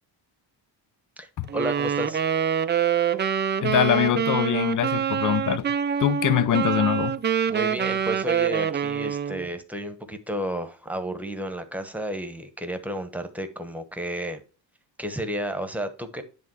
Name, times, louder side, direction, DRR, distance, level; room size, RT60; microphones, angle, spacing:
voice 1, 1.5-2.2 7.5-14.4 15.0-16.2, right 1 dB, 5° right, 1.1 m, -32 dB
Wind instrument woodwind instrument, 1.5-9.5, right 8 dB, 25° right, 0.4 m, -25 dB
voice 2, 3.6-5.6 6.0-7.2, left 10 dB, 45° left, 0.5 m, -23 dB
10.5 x 3.5 x 4.7 m
cardioid pair, 130°, 45 cm